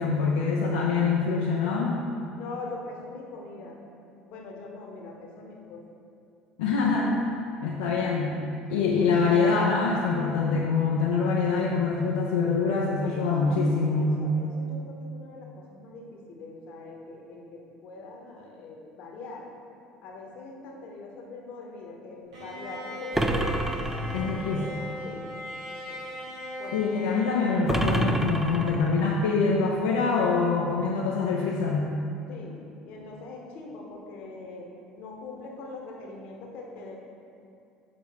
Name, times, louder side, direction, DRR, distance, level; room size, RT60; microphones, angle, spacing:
voice 1, 0.0-2.0 6.6-7.2 7.6-8.3 8.7-14.2 24.1-24.7 26.7-31.9, left 4 dB, 80° left, -3 dB, 0.5 m, -25 dB
voice 2, 2.4-3.8 4.3-5.8 8.7-8.9 13.0-13.6 13.9-19.4 20.0-24.0 24.3-25.2 25.7-26.1 26.6-26.7 32.3-32.6 32.8-34.7 35.0-37.0, left 3 dB, 60° left, 0 dB, 1.1 m, -42 dB
Bowed string instrument, 22.3-28.4, equal, 80° right, 1.4 m, -39 dB
sound 1, 23.1-24.6 27.7-29.2, right 2 dB, 10° right, 0.5 m, -28 dB
6.7 x 5.1 x 3.5 m, 2.6 s
hypercardioid pair, 70°, 3 cm